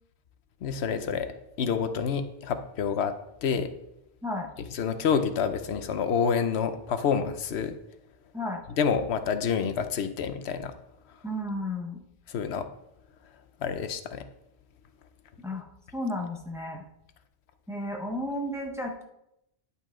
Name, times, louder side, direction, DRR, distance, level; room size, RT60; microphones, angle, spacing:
voice 1, 0.6-1.3 1.6-3.7 4.7-7.8 8.8-10.7 12.3-12.7 13.6-14.3, left 6 dB, 85° left, 10 dB, 1.0 m, -28 dB
voice 2, 11.2-12.0 15.4-15.7 15.9-16.8 17.7-19.0, left 1 dB, 5° right, 1 dB, 0.9 m, -33 dB
10.5 x 5.6 x 3.7 m, 0.83 s
omnidirectional pair, 1.1 m